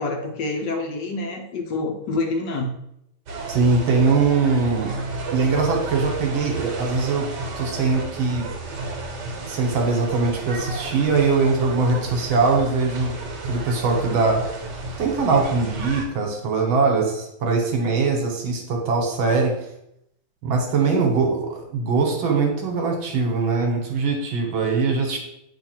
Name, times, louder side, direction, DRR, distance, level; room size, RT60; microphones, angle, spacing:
voice 1, 0.0-2.7, left 3 dB, 65° left, 3 dB, 1.4 m, -27 dB
sound 1, 3.3-16.0, right 2 dB, 60° right, 1.8 m, -32 dB
voice 2, 3.5-4.9 5.3-7.3 7.6-8.5 9.5-13.2 13.5-14.4 15.0-19.6 20.4-25.2, right 4 dB, 75° right, 2 dB, 1.9 m, -21 dB
8.6 x 3.1 x 4.4 m, 0.78 s
omnidirectional pair, 2.2 m